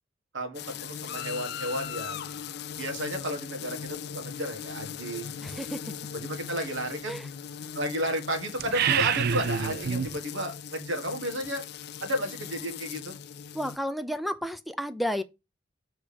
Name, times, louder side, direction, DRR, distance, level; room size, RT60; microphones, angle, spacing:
voice 1, 0.3-2.3 2.8-5.6 6.1-7.2 7.7-11.6 12.0-13.1, equal, 90° right, 1.7 m, -33 dB
sound 1, 0.5-13.8, left 8 dB, 60° left, 0.4 m, -39 dB
voice 2, 5.4-5.9 7.1-7.3 13.5-15.2, equal, ahead, 0.4 m, -32 dB
sound 2, 8.6-10.2, right 7 dB, 55° right, 0.4 m, -26 dB
6.9 x 3.6 x 5.1 m
head